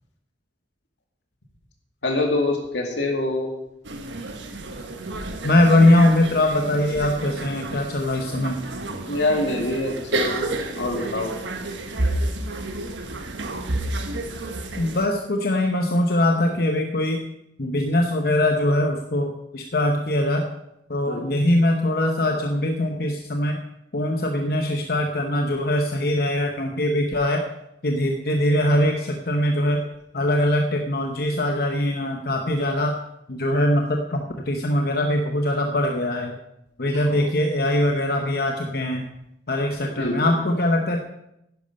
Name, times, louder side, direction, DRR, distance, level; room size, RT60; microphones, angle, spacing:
voice 1, 2.0-3.5 9.1-11.3 21.1-21.2 36.9-37.3 40.0-40.2, left 2 dB, 85° left, 2 dB, 2.5 m, -25 dB
sound 1, 3.8-15.1, right 2 dB, 90° right, 1.4 m, -30 dB
voice 2, 5.4-8.6 14.8-17.2 17.6-20.5 20.9-23.6 23.9-27.4 27.8-29.8 30.1-33.0 33.3-36.4 36.8-39.1 39.5-41.0, left 1 dB, 55° left, 3 dB, 0.9 m, -22 dB
10.5 x 10.5 x 5.5 m, 0.83 s
head